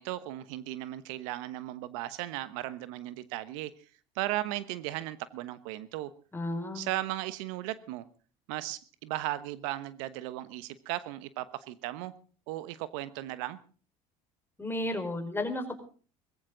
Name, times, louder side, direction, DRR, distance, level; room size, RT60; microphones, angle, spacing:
voice 1, 0.0-3.7 4.1-6.1 6.7-8.0 8.5-12.1 12.5-13.6, right 15 dB, 80° right, 15 dB, 1.2 m, -36 dB
voice 2, 6.3-6.9 14.6-15.8, left 1 dB, 15° left, 6 dB, 4.9 m, -33 dB
20.5 x 15.5 x 3.9 m, 0.40 s
supercardioid pair, 85°, 17 cm